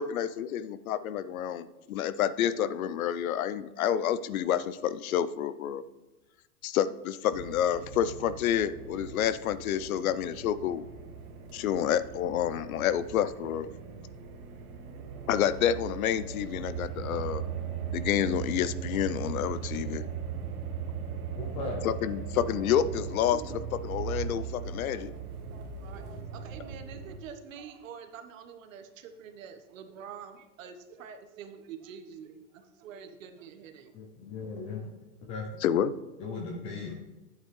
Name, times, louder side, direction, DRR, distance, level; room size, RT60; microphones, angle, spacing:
voice 1, 0.0-5.8 6.6-10.9 11.5-13.7 15.3-17.4 17.9-20.1 21.8-23.4 23.8-25.1 35.6-35.9, left 10 dB, 75° left, 16 dB, 0.7 m, -29 dB
sound 1, 7.3-27.2, right 7 dB, 80° right, 1.6 m, -39 dB
voice 2, 21.4-21.8 33.9-34.9 35.3-35.6 36.2-37.0, left 3 dB, 15° left, 3 dB, 0.4 m, -37 dB
voice 3, 22.4-22.9 23.3-23.5 25.8-26.1 26.3-34.0, right 7 dB, 65° right, 7 dB, 1.3 m, -46 dB
9.7 x 8.3 x 3.2 m, 1.1 s
hypercardioid pair, 140°, 43 cm